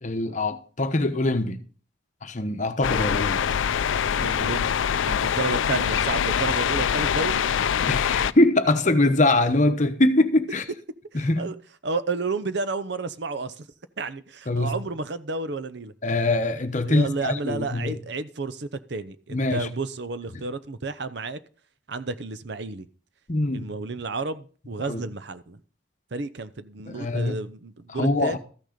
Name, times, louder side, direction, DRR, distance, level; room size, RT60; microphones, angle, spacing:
voice 1, 0.0-1.6 2.2-3.4 7.9-10.6 11.1-11.5 14.5-14.7 16.0-18.0 19.3-19.7 20.3-20.4 23.3-23.7 24.8-25.0 26.9-27.3 27.9-28.4, left 2 dB, 40° left, 1.0 m, -23 dB
sound 1, 2.8-8.3, left 8 dB, 80° left, 0.4 m, -24 dB
voice 2, 4.2-4.7 5.0-7.4 11.1-11.6 11.8-13.7 14.0-15.9 16.8-21.4 21.9-22.9 23.5-25.6 26.1-28.4, right 3 dB, 60° right, 0.7 m, -31 dB
14.0 x 6.5 x 5.1 m
head